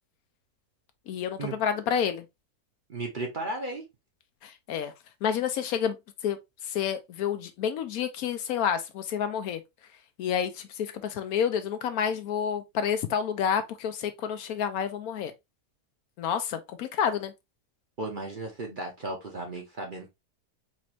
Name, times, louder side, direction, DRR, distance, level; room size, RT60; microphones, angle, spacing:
voice 1, 1.1-2.2 4.4-4.9 5.2-6.0 6.2-6.4 6.6-9.6 10.2-15.3 16.2-17.3, left 8 dB, 75° left, 1.0 m, -29 dB
voice 2, 2.9-3.8 18.0-20.1, right 2 dB, 40° right, 0.8 m, -35 dB
4.3 x 2.5 x 3.0 m
omnidirectional pair, 1.6 m